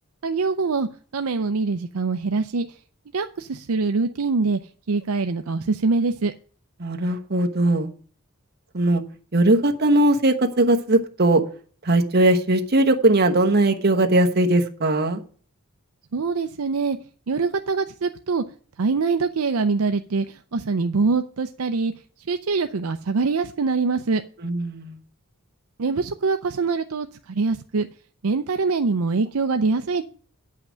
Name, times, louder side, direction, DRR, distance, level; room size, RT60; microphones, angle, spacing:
voice 1, 0.2-2.7 3.1-4.6 4.9-6.3 16.1-17.0 17.3-18.4 18.8-21.9 22.3-24.2 25.8-27.9 28.2-30.0, right 4 dB, 70° right, 8 dB, 0.6 m, -24 dB
voice 2, 6.8-7.9 8.7-9.0 9.3-11.4 11.8-15.2 24.4-25.0, right 1 dB, 45° right, 4 dB, 1.2 m, -19 dB
9.3 x 5.8 x 6.3 m, 0.43 s
head